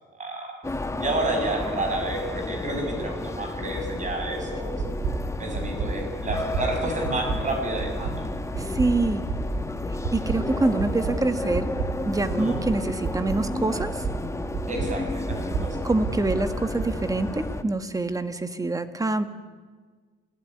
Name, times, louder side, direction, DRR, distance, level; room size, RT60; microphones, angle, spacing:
voice 1, 0.1-0.6 1.0-4.8 5.4-8.2 12.4-12.6 14.7-15.9, right 2 dB, 35° right, 4 dB, 6.7 m, -30 dB
sound 1, 0.6-17.6, left 2 dB, 15° left, 1.3 m, -32 dB
sound 2, 4.8-5.1 5.5-5.9 6.3-6.6 7.0-7.4 7.8-8.1 8.5-8.9 9.3-9.6 10.0-10.4 10.8-11.1 11.5-11.9 12.3-12.6 13.0-13.4 13.8-14.1 14.5-14.9 15.3-15.6 16.0-16.4 16.8-16.9, right 6 dB, 90° right, 4.6 m, -29 dB
voice 2, 8.6-9.2 9.9-11.7 12.1-14.0 15.8-19.2, right 2 dB, 15° right, 10 dB, 1.7 m, -26 dB
27.5 x 16.5 x 9.7 m, 1.5 s
cardioid pair, 125°, 21 cm